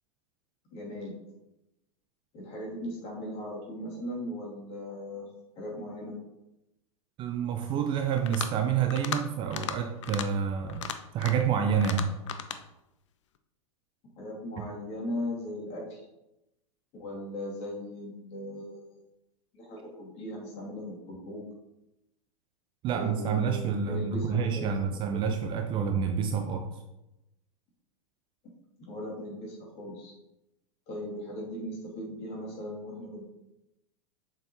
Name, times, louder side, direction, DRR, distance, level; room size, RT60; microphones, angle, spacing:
voice 1, 0.7-1.1 2.3-5.3 5.6-6.1 14.2-16.0 16.9-19.0 19.5-21.4 22.9-25.2 28.9-30.1 30.9-33.3, left 1 dB, 35° left, -3 dB, 2.4 m, -38 dB
voice 2, 7.2-10.9 11.1-12.1 22.8-26.7, right 7 dB, 25° right, 4 dB, 0.6 m, -28 dB
sound 1, 8.1-8.6 8.9-9.2 9.5-9.8 10.0-10.3 10.7-11.5 11.8-12.6, left 9 dB, 55° left, 0.6 m, -35 dB
7.1 x 5.4 x 2.8 m, 0.92 s
figure-of-eight pair, 95°, 18 cm